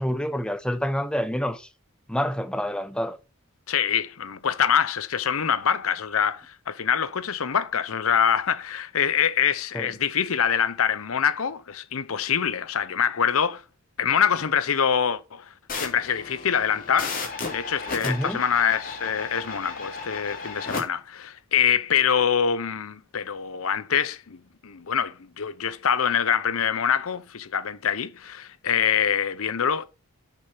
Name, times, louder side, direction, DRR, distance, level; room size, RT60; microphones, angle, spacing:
voice 1, 0.0-1.7 2.1-3.2 9.7-9.9 18.0-18.4, equal, 5° left, 0.8 m, -27 dB
voice 2, 3.7-13.6 14.0-17.3 17.5-24.4 24.6-29.9, left 8 dB, 70° left, 0.7 m, -25 dB
sound 1, 15.7-20.8, left 4 dB, 40° left, 3.3 m, -34 dB
8.5 x 6.7 x 5.9 m
head